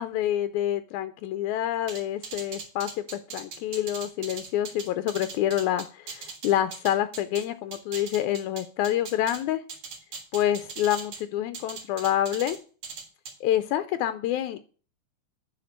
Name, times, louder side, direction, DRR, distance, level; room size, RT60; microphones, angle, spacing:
voice 1, 0.0-9.6 10.3-12.6 13.4-14.6, left 12 dB, 90° left, 11 dB, 1.7 m, -27 dB
sound 1, 1.9-7.4 7.7-9.4 9.7-11.2 11.5-12.6 12.8-13.3, right 5 dB, 55° right, 2.9 m, -39 dB
9.4 x 4.3 x 6.5 m, 0.39 s
omnidirectional pair, 4.0 m